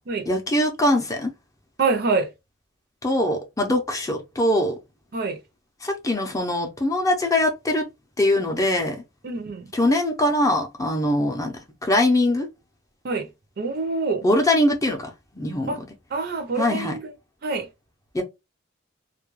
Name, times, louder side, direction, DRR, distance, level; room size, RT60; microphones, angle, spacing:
voice 1, 0.3-1.3 3.0-4.8 5.8-7.8 8.2-9.0 9.7-11.5 11.8-12.5 14.2-15.1 15.3-15.7 16.6-17.0 18.1-18.2, left 1 dB, 15° left, 0.5 m, -22 dB
voice 2, 1.8-2.3 5.1-5.4 9.2-9.7 13.0-13.3 13.6-14.2 15.7-15.8 16.1-17.1 17.4-17.7, right 4 dB, 50° right, 0.5 m, -26 dB
2.3 x 2.1 x 3.0 m
head